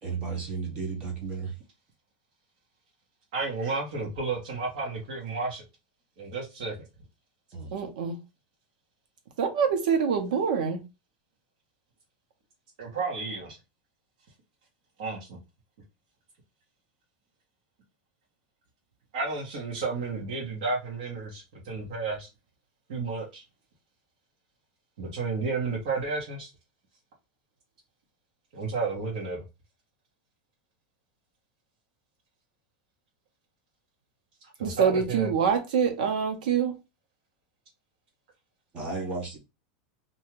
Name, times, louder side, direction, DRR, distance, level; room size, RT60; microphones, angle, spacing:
voice 1, 0.0-1.5 7.5-7.7 38.7-39.4, right 4 dB, 25° right, 0.7 m, -33 dB
voice 2, 3.3-5.6 6.2-6.7 12.8-13.6 15.0-15.4 19.1-22.3 22.9-23.4 25.0-26.5 28.5-29.4 34.6-35.3, right 3 dB, 60° right, 1.1 m, -32 dB
voice 3, 7.7-8.2 9.4-10.8 34.6-36.8, right 7 dB, 85° right, 0.9 m, -25 dB
2.7 x 2.3 x 3.0 m
supercardioid pair, 180°, 4 cm